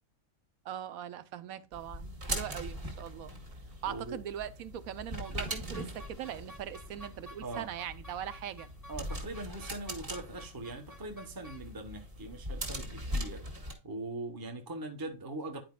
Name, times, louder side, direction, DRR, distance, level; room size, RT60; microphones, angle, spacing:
voice 1, 0.6-3.3 3.8-8.7, right 10 dB, 80° right, 1.1 m, -41 dB
sound 1, 1.7-13.7, equal, 40° right, 2.0 m, -41 dB
voice 2, 3.8-4.2 7.4-7.7 8.9-15.6, right 2 dB, 20° right, 0.9 m, -41 dB
sound 2, 5.2-13.2, left 2 dB, 15° left, 0.7 m, -55 dB
10.5 x 4.9 x 2.3 m
omnidirectional pair, 1.5 m